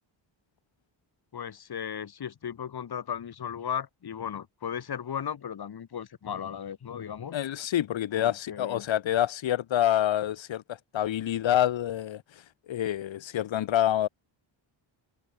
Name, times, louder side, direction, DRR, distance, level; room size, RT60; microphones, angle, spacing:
voice 1, 1.3-7.4 8.1-8.9, left 8 dB, 50° left, 3.7 m, -36 dB
voice 2, 7.3-12.2 12.7-14.1, left 11 dB, 70° left, 1.6 m, -27 dB
wide cardioid pair, 150°, 47 cm